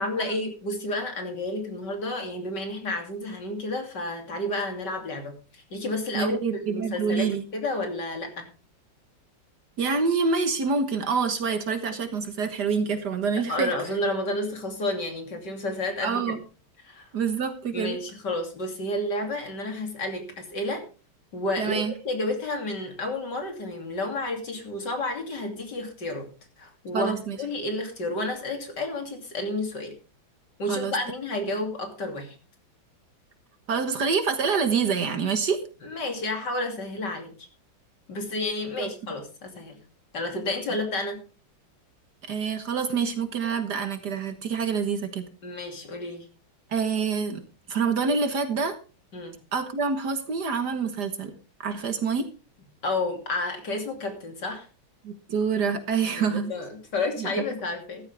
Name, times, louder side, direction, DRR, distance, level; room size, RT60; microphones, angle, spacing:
voice 1, 0.0-6.4 6.7-8.5 13.5-16.3 16.8-17.1 17.7-20.8 21.3-26.3 26.6-29.9 30.6-32.3 35.8-37.3 38.1-39.8 40.1-41.2 45.4-46.3 49.1-49.4 52.8-54.7 56.1-58.1, left 2 dB, 55° left, 4 dB, 3.4 m, -31 dB
voice 2, 6.1-7.4 9.8-13.7 16.0-16.4 17.1-18.0 21.6-21.9 26.9-27.4 30.7-30.9 33.7-35.6 38.8-38.9 42.2-45.3 46.7-47.4 47.7-48.8 49.5-51.4 51.6-52.3 55.0-56.5 57.2-57.4, right 5 dB, 55° right, 9 dB, 1.8 m, -26 dB
14.5 x 12.5 x 3.4 m, 0.34 s
omnidirectional pair, 2.2 m